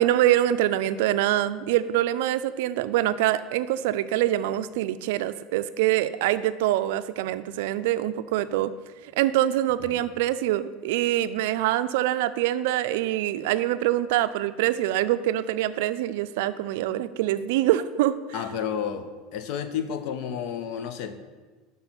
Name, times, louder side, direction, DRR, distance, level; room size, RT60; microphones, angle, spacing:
voice 1, 0.0-8.7 9.2-18.2, right 13 dB, 80° right, 14 dB, 0.3 m, -24 dB
voice 2, 18.3-21.2, left 8 dB, 60° left, 9 dB, 0.7 m, -31 dB
6.1 x 5.4 x 5.7 m, 1.3 s
supercardioid pair, 135°, 0 cm